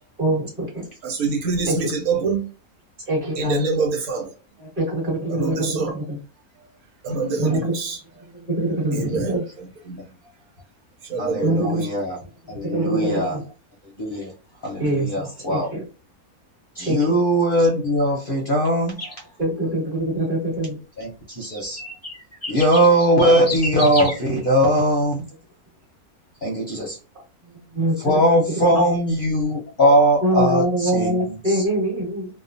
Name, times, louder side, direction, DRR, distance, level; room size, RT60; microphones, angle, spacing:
voice 1, 1.0-2.4 3.4-4.3 5.3-5.9 7.0-8.0 8.9-9.3 9.9-10.0 11.0-11.7, right 4 dB, 75° right, 1 dB, 1.3 m, -25 dB
voice 2, 3.1-3.6 4.6-6.2 7.4-7.7 8.3-9.4 11.4-11.8 12.5-13.4 14.8-15.8 16.8-17.2 19.4-20.8 27.7-28.2 28.6-28.8 30.2-32.3, right 1 dB, 35° right, -2 dB, 1.4 m, -24 dB
voice 3, 11.2-12.2 12.5-13.4 14.0-14.3 14.6-15.7 16.8-19.1 21.0-21.8 22.5-25.2 26.4-27.0 28.0-31.6, equal, 50° left, -1 dB, 0.7 m, -20 dB
sound 1, 19.0-19.2 21.4-24.2, left 1 dB, 20° left, 0.5 m, -30 dB
2.8 x 2.2 x 2.5 m, 0.35 s
omnidirectional pair, 1.5 m